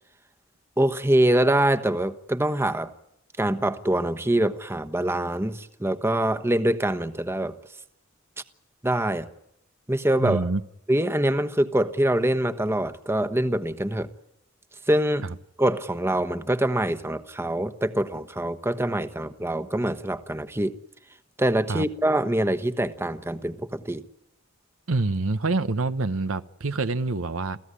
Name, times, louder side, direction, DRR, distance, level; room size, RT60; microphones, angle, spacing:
voice 1, 0.8-2.9 3.4-7.6 8.8-9.3 9.9-10.5 10.9-14.1 14.9-15.3 15.6-20.8 21.4-24.0, right 1 dB, 10° right, 1.1 m, -24 dB
voice 2, 10.2-10.6 21.7-21.8 24.9-27.6, right 3 dB, 90° right, 1.0 m, -26 dB
28.5 x 15.5 x 9.8 m
head